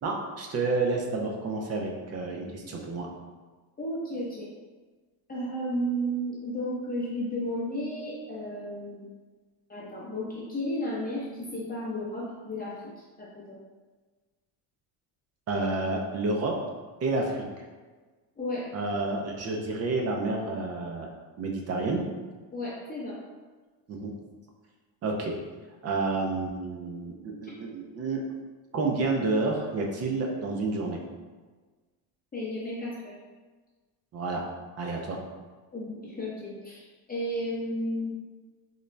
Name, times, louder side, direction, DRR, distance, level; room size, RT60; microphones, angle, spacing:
voice 1, 0.0-3.1 15.5-16.6 17.0-17.4 18.7-21.1 21.4-22.0 23.9-24.1 25.0-25.4 25.8-28.2 28.7-31.0 34.1-34.5 34.8-35.2, right 3 dB, 35° right, 1 dB, 0.4 m, -29 dB
voice 2, 3.8-4.5 5.3-9.0 9.7-12.8 13.2-13.6 18.4-18.7 22.5-23.2 32.3-33.1 35.7-38.1, equal, 20° left, -7 dB, 0.7 m, -33 dB
3.8 x 2.1 x 3.1 m, 1.3 s
cardioid pair, 140°, 47 cm